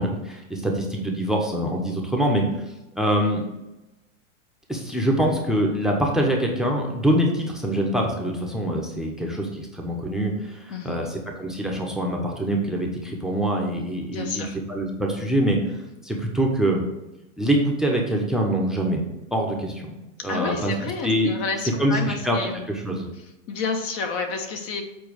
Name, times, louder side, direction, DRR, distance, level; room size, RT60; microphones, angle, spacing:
voice 1, 0.0-2.6 3.0-3.4 4.7-16.8 17.4-19.0 19.3-19.9 20.2-20.7 21.0-21.3 21.8-22.4 22.7-23.1, right 1 dB, ahead, 0 dB, 1.0 m, -24 dB
voice 2, 10.7-11.0 14.1-14.6 20.2-22.6 23.5-24.8, left 4 dB, 35° left, 5 dB, 1.2 m, -30 dB
7.6 x 4.3 x 6.5 m, 0.97 s
hypercardioid pair, 125°, 39 cm